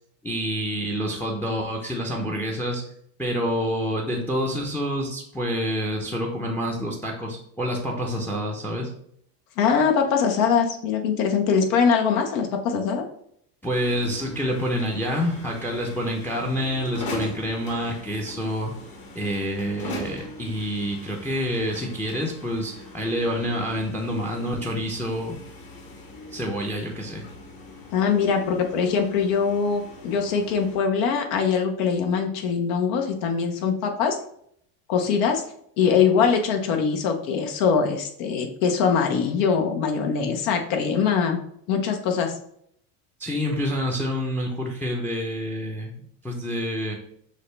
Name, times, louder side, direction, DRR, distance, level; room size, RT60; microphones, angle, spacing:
voice 1, 0.2-2.8 3.2-8.9 13.6-18.7 19.1-25.4 26.3-27.2 43.2-47.0, equal, 5° left, 1 dB, 0.6 m, -27 dB
voice 2, 9.6-13.1 27.9-34.2 34.9-35.4 35.8-41.4 41.7-42.3, left 6 dB, 65° left, 4 dB, 1.1 m, -22 dB
sound 1, 13.7-30.8, left 2 dB, 45° left, 1.4 m, -41 dB
6.5 x 2.2 x 3.3 m, 0.68 s
supercardioid pair, 105°, 49 cm